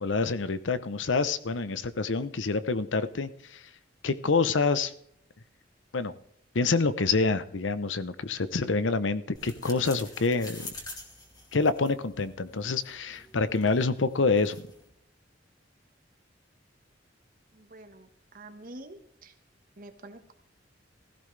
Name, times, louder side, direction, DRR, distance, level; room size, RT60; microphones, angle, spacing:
voice 1, 0.0-3.6 4.0-4.9 5.9-6.1 6.5-10.7 11.5-14.6, left 4 dB, 90° left, 14 dB, 0.8 m, -27 dB
sound 1, 9.4-14.9, left 2 dB, 20° left, 2.4 m, -47 dB
voice 2, 17.5-18.1 18.3-19.3 19.8-20.3, right 1 dB, 50° right, 7 dB, 1.4 m, -47 dB
16.0 x 14.5 x 3.3 m, 0.70 s
head